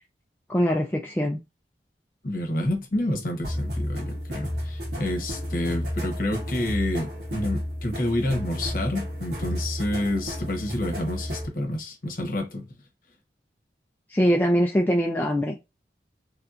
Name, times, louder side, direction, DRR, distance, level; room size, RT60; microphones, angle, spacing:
voice 1, 0.5-1.4 14.1-15.6, equal, 10° left, 0.3 m, -23 dB
voice 2, 2.2-12.7, left 1 dB, 50° left, 1.0 m, -29 dB
sound 1, 3.4-11.5, equal, 75° right, 1.3 m, -32 dB
3.3 x 2.7 x 2.4 m
head